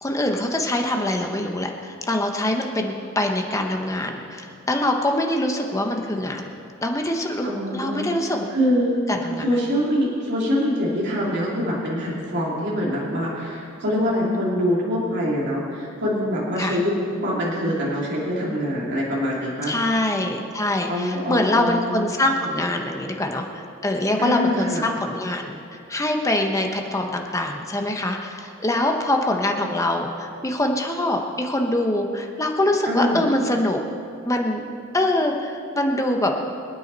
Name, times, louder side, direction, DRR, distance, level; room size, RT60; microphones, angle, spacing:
voice 1, 0.0-6.5 6.8-8.4 9.1-9.5 16.6-16.8 19.6-33.8 34.2-34.6 34.9-36.3, left 1 dB, 15° left, 2 dB, 1.0 m, -24 dB
voice 2, 7.4-8.1 8.5-9.0 9.4-19.8 20.9-22.1 24.2-24.8 32.9-33.2, equal, 55° right, -5 dB, 2.7 m, -24 dB
25.0 x 9.3 x 4.1 m, 2.5 s
head